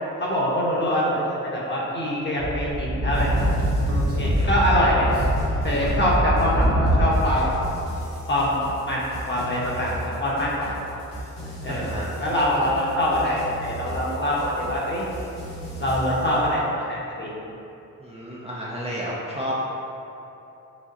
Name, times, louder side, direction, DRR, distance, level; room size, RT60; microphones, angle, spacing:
voice 1, 0.2-3.3 4.1-5.1 5.6-7.5 8.3-8.6 8.8-10.7 11.6-11.9 12.2-15.0 15.8-16.6 16.9-17.3, equal, 30° left, -6 dB, 1.2 m, -24 dB
Speech / Wind, 2.4-7.3, equal, 40° right, 1.1 m, -23 dB
sound 1, 3.1-16.4, right 1 dB, 65° left, 1.2 m, -36 dB
voice 2, 4.0-4.5 11.7-12.1 18.0-19.5, equal, 15° right, -6 dB, 0.7 m, -32 dB
6.3 x 2.2 x 3.0 m, 2.9 s
supercardioid pair, 50°, 36 cm